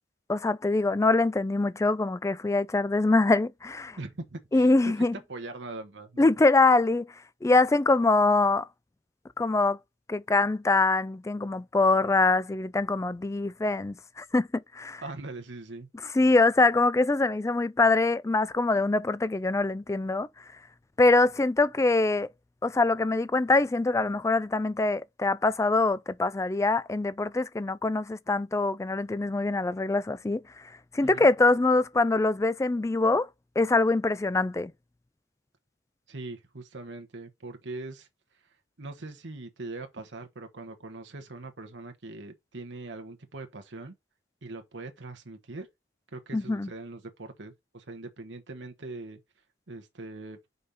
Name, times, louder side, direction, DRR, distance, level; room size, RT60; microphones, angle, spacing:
voice 1, 0.3-4.0 4.5-5.1 6.2-7.1 7.4-8.7 9.4-9.8 10.1-15.0 16.1-20.3 21.0-22.3 22.6-30.6 30.9-33.3 33.6-34.7 46.3-46.7, left 3 dB, 15° left, 0.3 m, -24 dB
voice 2, 4.0-6.3 15.0-15.9 31.0-31.3 36.1-38.1 38.8-43.9 44.4-45.7 46.1-49.2 49.7-50.4, right 2 dB, 70° right, 1.1 m, -41 dB
5.4 x 4.1 x 5.0 m
head